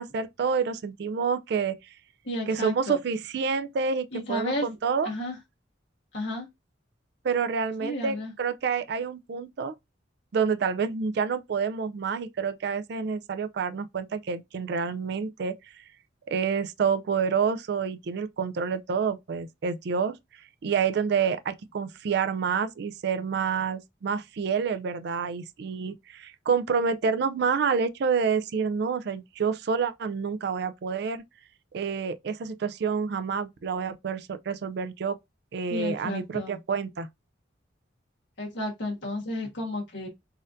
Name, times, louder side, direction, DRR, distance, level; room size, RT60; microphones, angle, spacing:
voice 1, 0.0-1.8 2.5-5.1 7.2-9.7 10.3-15.5 16.3-20.2 20.6-31.2 31.7-35.2 35.5-37.1, right 6 dB, 60° right, 0.4 m, -28 dB
voice 2, 2.2-3.0 4.1-4.7 5.0-5.4 6.1-6.5 7.8-8.3 35.7-36.6 38.4-40.1, left 1 dB, 65° left, 1.3 m, -32 dB
4.1 x 2.5 x 2.5 m
head